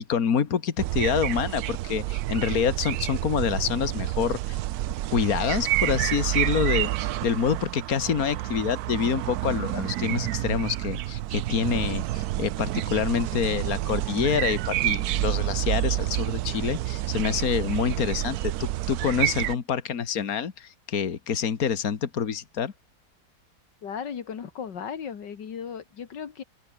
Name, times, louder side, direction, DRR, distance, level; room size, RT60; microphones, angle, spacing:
voice 1, 0.0-4.6 5.1-22.7, left 7 dB, 55° left, 2.1 m, -27 dB
sound 1, 0.8-19.5, right 15 dB, 70° right, 1.0 m, -29 dB
voice 2, 23.8-26.4, left 7 dB, 90° left, 2.4 m, -36 dB
omnidirectional pair, 1.8 m